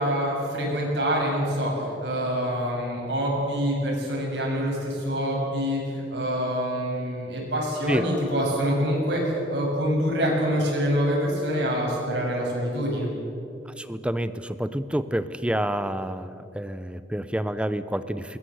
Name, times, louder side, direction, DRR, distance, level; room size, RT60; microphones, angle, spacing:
voice 1, 0.0-13.1, equal, 70° right, -2 dB, 7.8 m, -26 dB
voice 2, 13.8-18.4, right 1 dB, 5° right, 12 dB, 0.7 m, -28 dB
21.5 x 21.0 x 8.0 m, 2.7 s
head